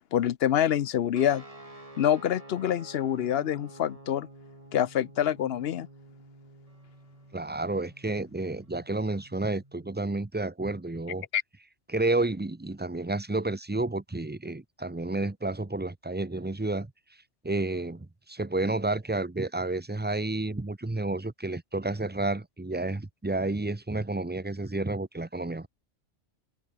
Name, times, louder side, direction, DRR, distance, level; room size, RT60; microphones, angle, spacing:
voice 1, 0.1-1.4 2.0-4.3 4.7-5.9 11.3-11.4, left 10 dB, 65° left, 0.8 m, -26 dB
sound 1, 1.1-10.1, right 1 dB, 30° right, 3.7 m, -50 dB
voice 2, 7.3-11.2 11.9-16.9 17.4-25.7, right 2 dB, 10° right, 0.5 m, -30 dB
omnidirectional pair, 1.2 m